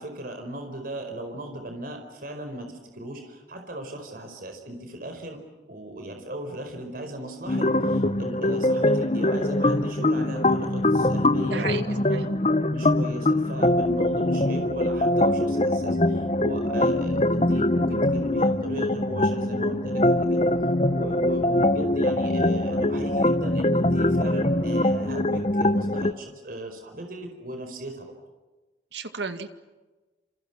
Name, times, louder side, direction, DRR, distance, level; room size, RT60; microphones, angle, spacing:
voice 1, 0.0-5.4 5.7-12.3 12.7-20.5 20.9-28.1, right 1 dB, 50° right, 5 dB, 4.8 m, -37 dB
sound 1, 7.5-26.1, left 1 dB, 35° left, 0.9 m, -23 dB
voice 2, 11.5-12.3 28.9-29.5, right 5 dB, 75° right, 8 dB, 2.2 m, -33 dB
29.5 x 29.0 x 6.1 m, 1.2 s
head